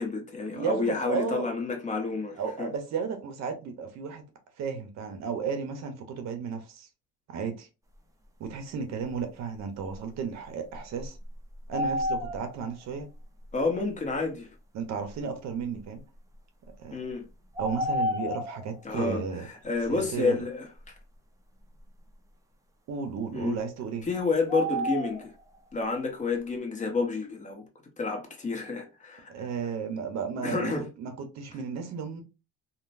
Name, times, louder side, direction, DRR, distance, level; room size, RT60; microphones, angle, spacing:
voice 1, 0.0-2.7 13.5-14.5 16.9-17.2 18.8-20.7 23.3-23.6 24.0-25.3 25.7-27.6 28.0-29.3 30.4-30.9, left 4 dB, 25° left, 0.8 m, -30 dB
voice 2, 0.5-1.5 2.3-4.2 4.6-6.9 7.3-7.7 8.4-11.2 11.7-13.1 14.7-16.0 16.8-17.0 17.6-19.5 19.9-20.4 22.9-24.1 29.3-30.7 31.0-32.2, right 6 dB, 55° right, 0.8 m, -33 dB
sound 1, 9.9-10.0 10.7-12.7 13.4-13.5 15.1-15.2 17.5-18.7 24.5-25.3, equal, 10° right, 0.6 m, -30 dB
3.8 x 2.1 x 2.5 m
cardioid pair, 110°, 32 cm